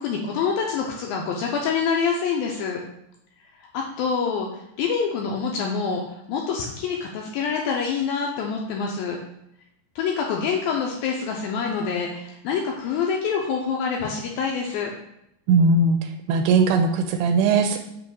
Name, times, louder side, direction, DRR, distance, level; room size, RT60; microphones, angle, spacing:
voice 1, 0.0-2.8 3.6-9.2 10.0-14.9, left 6 dB, 80° left, 1 dB, 2.2 m, -26 dB
voice 2, 15.5-17.8, right 4 dB, 80° right, 6 dB, 2.4 m, -19 dB
7.6 x 3.1 x 6.3 m, 0.79 s
omnidirectional pair, 4.8 m